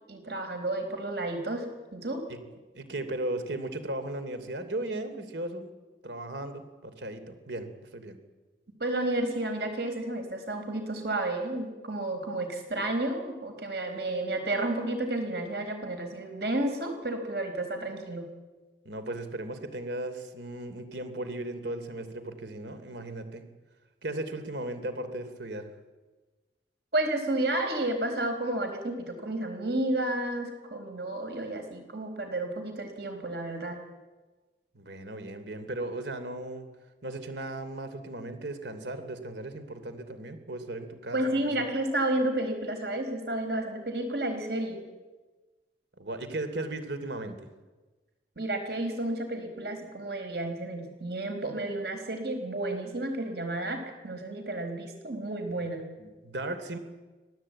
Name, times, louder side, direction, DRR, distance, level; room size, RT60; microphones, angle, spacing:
voice 1, 0.1-1.6 1.9-2.2 8.8-18.3 26.9-33.8 41.1-44.8 48.4-55.8, right 1 dB, 70° right, 6 dB, 4.5 m, -31 dB
voice 2, 2.7-5.7 6.0-8.2 18.8-23.4 24.0-25.7 34.7-36.7 37.0-41.5 46.0-47.5 56.0-56.8, right 2 dB, 85° right, 9 dB, 3.0 m, -36 dB
25.5 x 18.0 x 8.7 m, 1.3 s
head